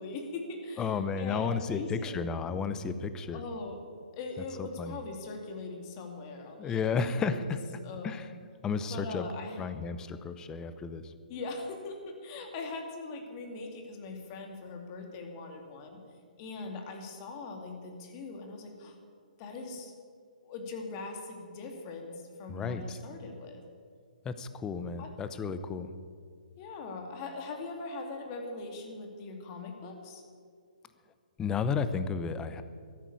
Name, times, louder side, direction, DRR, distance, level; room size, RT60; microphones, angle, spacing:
voice 1, 0.0-2.2 3.3-3.8 4.1-7.5 7.8-8.1 8.9-9.6 11.3-16.0 16.4-19.0 19.4-19.9 20.4-23.6 25.0-25.1 26.6-30.2, left 3 dB, 30° left, 3 dB, 2.5 m, -41 dB
voice 2, 0.8-3.4 4.8-5.0 6.6-7.6 8.0-8.3 8.6-9.3 9.6-11.1 22.5-23.0 24.2-25.9 31.4-32.6, left 5 dB, 15° left, 11 dB, 0.7 m, -32 dB
13.5 x 9.9 x 8.6 m, 2.1 s
hypercardioid pair, 140°, 5 cm